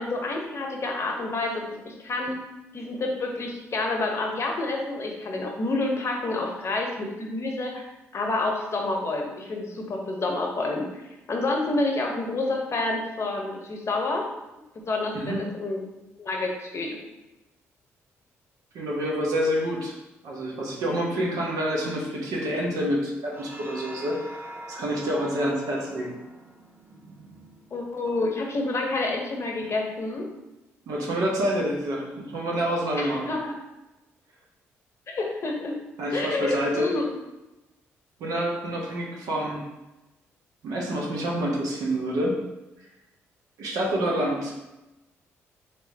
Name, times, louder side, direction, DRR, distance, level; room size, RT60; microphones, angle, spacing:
voice 1, 0.0-2.4 2.7-7.8 8.1-11.0 11.3-14.3 14.8-15.8 16.2-17.0 27.7-30.3 33.0-33.5 35.1-35.8 36.1-37.1, left 2 dB, 45° left, 1 dB, 0.8 m, -28 dB
voice 2, 15.1-15.5 18.7-19.9 20.2-24.2 24.7-26.2 30.9-33.3 36.0-36.9 38.2-39.6 40.6-42.4 43.6-44.5, equal, 70° right, -2 dB, 0.9 m, -27 dB
sound 1, 23.3-28.1, right 1 dB, 35° right, 0.7 m, -44 dB
3.4 x 2.9 x 2.7 m, 1.0 s
hypercardioid pair, 50°, 6 cm